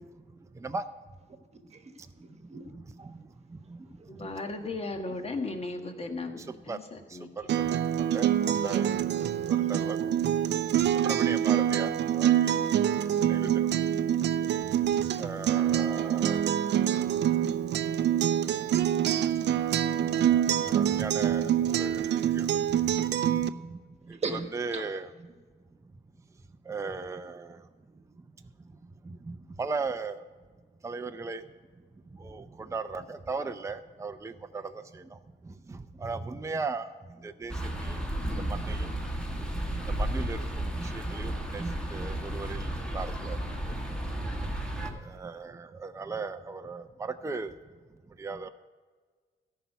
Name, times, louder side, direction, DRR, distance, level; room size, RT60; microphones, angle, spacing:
voice 1, 1.7-2.6 3.0-3.1 4.0-4.1 8.7-8.8 10.0-10.1 12.1-12.7 19.1-19.5 21.4-21.6 24.2-24.4 24.7-24.8, right 4 dB, 35° right, 7 dB, 1.4 m, -40 dB
voice 2, 4.2-7.3, left 3 dB, 30° left, 5 dB, 1.5 m, -36 dB
Acoustic guitar, 7.5-23.5, right 10 dB, 60° right, 0.5 m, -26 dB
voice 3, 9.5-10.0 11.0-11.9 12.2-12.5 13.3-13.5 15.2-16.4 20.0-22.5 23.3-23.8 24.1-25.1 26.7-27.5 29.6-30.2 30.8-31.4 32.2-32.4 32.7-34.6 35.7-36.9 37.2-37.5 37.8-38.0 38.5-38.9 39.7-40.4 40.8-42.7 42.9-43.4 45.1-47.5 48.2-48.5, right 4 dB, 15° right, 7 dB, 0.6 m, -36 dB
sound 1, 37.5-44.9, right 1 dB, 5° left, 1.8 m, -33 dB
13.5 x 5.8 x 9.3 m, 1.5 s
cardioid pair, 90°, 20 cm